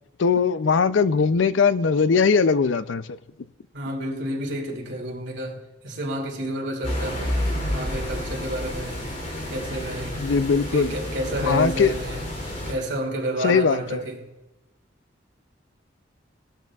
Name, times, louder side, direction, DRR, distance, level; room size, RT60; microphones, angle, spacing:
voice 1, 0.2-3.2 10.2-10.9 11.4-11.9 13.4-14.0, left 5 dB, 80° left, 0.5 m, -20 dB
voice 2, 3.7-7.4 7.7-8.9 9.5-10.2 10.6-12.2 12.7-14.2, right 1 dB, 65° right, 2.6 m, -30 dB
sound 1, 6.8-12.7, left 1 dB, 45° left, 3.3 m, -30 dB
18.5 x 12.0 x 2.4 m
head